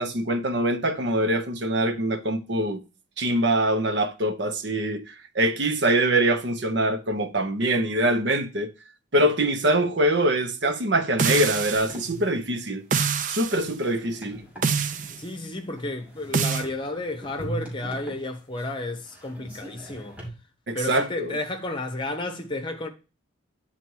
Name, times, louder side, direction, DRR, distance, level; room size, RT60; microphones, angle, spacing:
voice 1, 0.0-2.8 3.2-8.7 9.1-12.8 13.3-14.4 20.7-21.4, right 1 dB, 60° right, 0.8 m, -24 dB
sound 1, 11.2-12.0 12.9-13.6 14.6-15.2 16.3-16.7, right 6 dB, 40° right, 0.5 m, -25 dB
sound 2, 11.8-20.3, right 1 dB, 5° right, 2.7 m, -41 dB
voice 2, 15.2-20.2 20.7-22.9, left 2 dB, 25° left, 1.0 m, -32 dB
9.3 x 4.1 x 4.6 m
head